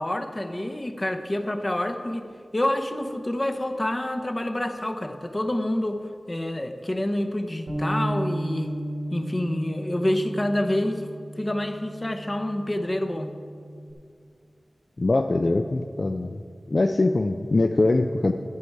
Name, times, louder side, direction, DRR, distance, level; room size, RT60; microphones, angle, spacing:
voice 1, 0.0-2.2 2.5-8.8 9.1-11.1 11.4-13.3, left 1 dB, 30° left, 6 dB, 0.7 m, -27 dB
Bass guitar, 7.7-13.9, right 1 dB, 75° right, 1.3 m, -34 dB
voice 2, 15.0-16.4 16.7-18.3, left 2 dB, 50° left, 5 dB, 0.4 m, -22 dB
11.0 x 8.4 x 4.6 m, 2.2 s
wide cardioid pair, 80°, 0 cm